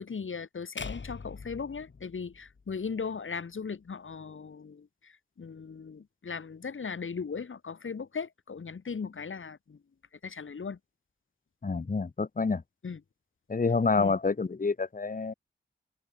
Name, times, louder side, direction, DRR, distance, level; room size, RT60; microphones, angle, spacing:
voice 1, 0.0-9.8 10.2-10.8 12.8-13.0 14.0-14.1, left 5 dB, 85° left, 5.6 m, -38 dB
sound 1, 0.8-3.0, left 4 dB, 70° left, 5.5 m, -43 dB
voice 2, 11.6-12.6 13.5-15.3, left 4 dB, 45° left, 1.4 m, -28 dB
wide cardioid pair, 85°, 20 cm